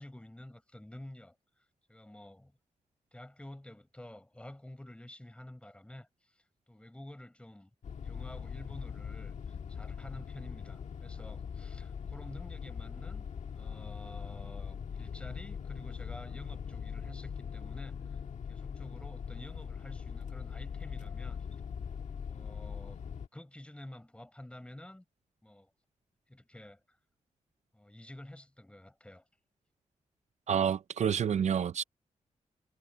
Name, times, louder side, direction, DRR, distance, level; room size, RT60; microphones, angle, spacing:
voice 1, 0.0-1.3 1.9-2.5 3.1-7.7 8.0-13.3 13.5-18.2 18.5-21.5 22.3-23.0 23.3-25.0 25.4-25.7 26.3-27.0 27.7-29.2, left 1 dB, 10° left, 4.9 m, -50 dB
sound 1, 7.8-23.3, left 7 dB, 70° left, 1.7 m, -41 dB
voice 2, 30.5-31.8, right 8 dB, 65° right, 0.5 m, -28 dB
wide cardioid pair, 140°, 13 cm